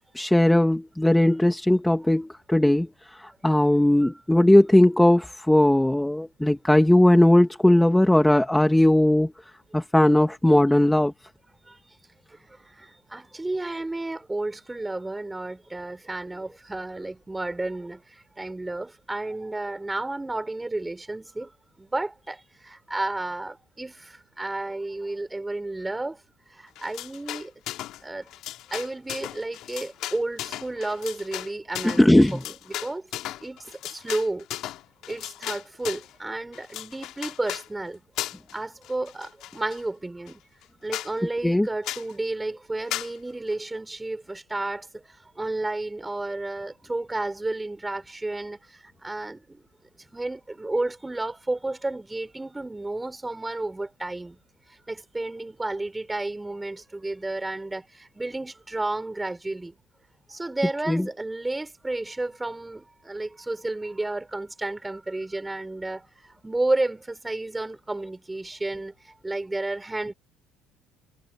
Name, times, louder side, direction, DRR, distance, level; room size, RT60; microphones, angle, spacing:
voice 1, 0.1-2.9 3.4-9.3 9.7-11.1 32.0-32.4 41.4-41.7 60.9-61.1, left 1 dB, 5° left, 2.7 m, -18 dB
voice 2, 12.3-21.5 21.8-26.2 26.5-27.5 28.0-28.3 28.7-33.1 33.4-34.5 35.1-38.0 38.5-40.4 40.8-49.7 50.1-54.4 54.9-59.7 60.3-70.1, right 2 dB, 15° right, 7.1 m, -32 dB
sound 1, 26.8-28.0 28.3-36.1 36.5-37.7 38.2-38.6 38.8-39.8 40.3-40.4 40.6-40.7 40.9-41.1 41.8-42.1 42.9-43.1, left 14 dB, 60° left, 3.7 m, -36 dB
hypercardioid pair, 60°, 0 cm